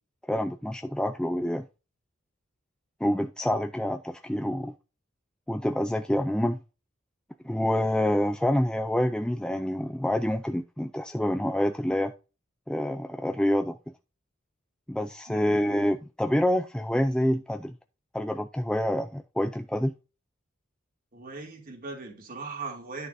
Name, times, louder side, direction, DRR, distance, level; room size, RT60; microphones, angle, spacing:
voice 1, 0.3-1.6 3.0-4.7 5.5-6.6 7.4-12.1 12.7-13.8 14.9-17.7 18.1-19.9, equal, 5° left, 0.4 m, -27 dB
voice 2, 15.3-15.7 21.1-23.1, right 4 dB, 45° right, 2.9 m, -39 dB
11.0 x 6.6 x 2.7 m
head